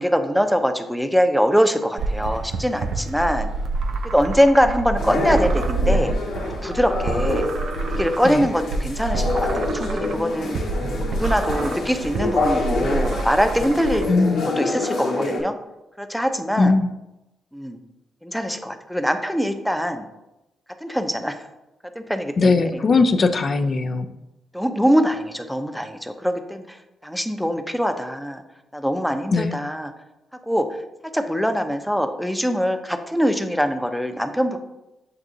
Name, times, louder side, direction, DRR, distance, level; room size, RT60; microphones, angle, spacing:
voice 1, 0.0-3.5 4.1-6.1 6.6-7.4 8.0-10.6 11.1-14.1 14.5-15.5 16.0-16.7 17.5-17.8 18.2-20.0 20.8-21.5 22.0-22.8 24.5-26.8 27.0-28.4 28.7-29.9 30.5-30.7 31.1-34.6, equal, ahead, 7 dB, 0.5 m, -23 dB
sound 1, 2.0-14.1, right 3 dB, 70° right, 0.4 m, -27 dB
sound 2, 5.0-15.4, left 2 dB, 80° left, 0.9 m, -27 dB
voice 2, 14.1-14.6 16.6-16.9 22.4-24.1 29.3-29.5, left 3 dB, 50° left, 8 dB, 0.4 m, -19 dB
7.5 x 2.6 x 2.6 m, 0.95 s
supercardioid pair, 55°, 0 cm